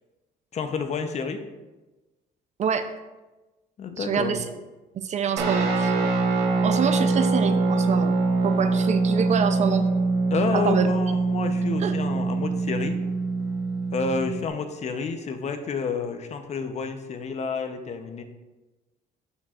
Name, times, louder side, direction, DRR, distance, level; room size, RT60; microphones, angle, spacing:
voice 1, 0.5-1.4 3.8-4.4 10.3-13.0 13.9-18.2, left 5 dB, 40° left, 7 dB, 0.7 m, -29 dB
voice 2, 4.0-4.4 4.9-6.1 6.6-8.1 8.4-9.9 10.5-10.9 11.8-11.9, right 8 dB, 45° right, 9 dB, 0.5 m, -26 dB
Guitar, 5.4-14.5, right 3 dB, 80° right, 1.3 m, -24 dB
12.0 x 4.8 x 2.4 m, 1.1 s
cardioid pair, 110°, 17 cm